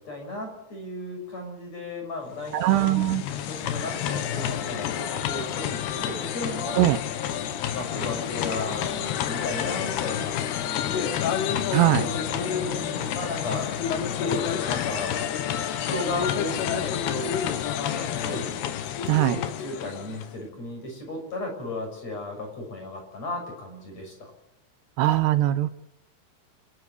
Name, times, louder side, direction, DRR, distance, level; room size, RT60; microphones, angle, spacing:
voice 1, 0.0-3.1 3.5-6.9 7.7-11.2 11.9-13.7 14.2-15.2 15.9-17.4 17.9-18.5 19.3-24.3, left 1 dB, 35° left, 3 dB, 7.5 m, -35 dB
sound 1, 2.3-20.4, left 9 dB, 70° left, 3.0 m, -29 dB
voice 2, 2.5-3.2 6.8-7.0 11.7-12.1 19.1-19.4 25.0-25.7, right 15 dB, 75° right, 13 dB, 2.7 m, -21 dB
28.0 x 12.5 x 8.4 m, 0.94 s
omnidirectional pair, 5.5 m